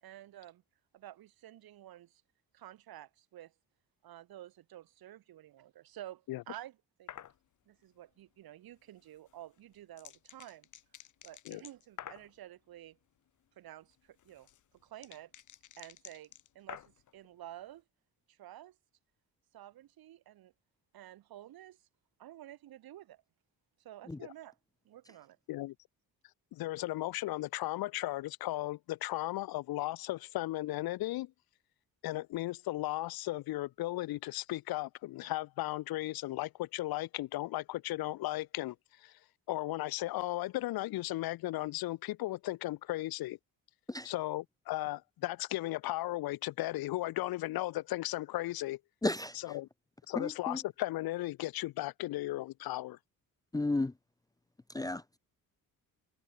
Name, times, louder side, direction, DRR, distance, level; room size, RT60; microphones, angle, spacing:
voice 1, 0.0-0.6 0.9-2.2 2.5-3.5 4.0-7.1 7.7-10.7 11.2-13.0 13.6-14.5 14.8-15.3 15.8-16.8 17.1-17.8 18.3-18.7 19.5-20.5 20.9-21.8 22.2-23.2 23.8-24.6 24.8-25.4, right 13 dB, 75° right, 3.3 m, -51 dB
sound 1, 7.1-7.4 9.3-12.3 13.9-17.1, left 10 dB, 55° left, 1.4 m, -50 dB
voice 2, 26.5-31.3 32.0-39.1 39.5-43.4 44.0-48.8 49.3-49.7 50.1-53.0, left 17 dB, 75° left, 0.8 m, -36 dB
voice 3, 49.0-49.4 50.2-50.6 53.5-53.9 54.7-55.0, left 2 dB, 10° left, 0.5 m, -33 dB
cardioid pair, 115°, 37 cm